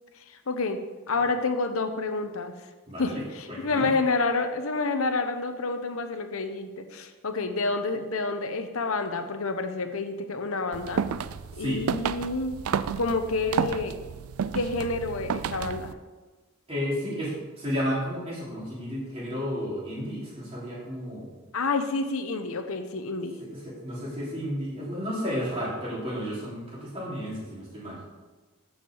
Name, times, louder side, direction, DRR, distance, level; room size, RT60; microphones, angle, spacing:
voice 1, 0.3-0.8 1.1-2.5 3.0-11.0 11.5-12.6 13.0-14.0 14.5-15.9 21.5-23.4, left 3 dB, 75° left, 7 dB, 0.9 m, -29 dB
voice 2, 2.9-3.2 3.5-3.9 11.5-11.8 16.7-21.3 23.4-28.0, equal, 30° right, -6 dB, 3.2 m, -32 dB
sound 1, 10.7-15.9, right 7 dB, 90° right, 0.4 m, -31 dB
6.5 x 6.2 x 7.1 m, 1.3 s
head